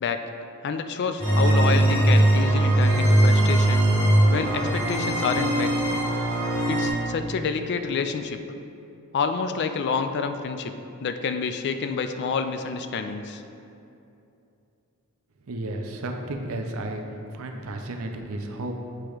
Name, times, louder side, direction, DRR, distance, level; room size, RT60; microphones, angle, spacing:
voice 1, 0.6-3.9 4.3-5.7 6.7-8.4 9.1-10.7 11.0-13.4, left 5 dB, 50° left, 8 dB, 0.4 m, -28 dB
sound 1, 1.2-6.9, right 1 dB, 20° left, 1.5 m, -20 dB
voice 2, 15.5-17.0 17.3-18.8, right 2 dB, 70° right, 4 dB, 0.6 m, -32 dB
7.7 x 3.0 x 4.9 m, 2.7 s
head